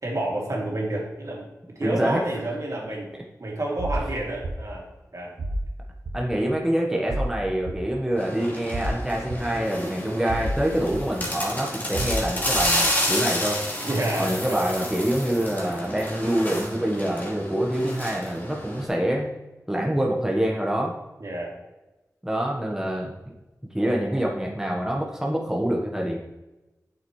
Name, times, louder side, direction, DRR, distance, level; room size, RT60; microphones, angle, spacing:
voice 1, 0.0-1.5 1.8-3.1 3.4-4.8 5.1-5.4 13.8-14.6 21.2-21.5, right 1 dB, 60° right, -3 dB, 2.6 m, -29 dB
voice 2, 1.8-2.2 3.1-3.2 6.1-13.6 14.2-19.3 19.7-20.9 22.2-23.1 23.7-26.2, right 1 dB, 10° right, -1 dB, 1.2 m, -26 dB
sound 1, 3.8-4.0 4.4-4.6 5.4-5.6 6.1-6.2 7.1-7.3 7.7-7.8 8.7-8.9 9.3-9.4 10.3-10.6 10.9-11.0 11.9-12.2 12.6-12.7, right 1 dB, 85° right, 0.9 m, -28 dB
sound 2, 8.2-18.9, left 1 dB, 30° left, 2.6 m, -30 dB
8.2 x 6.9 x 3.2 m, 1.1 s
wide cardioid pair, 55°, 6 cm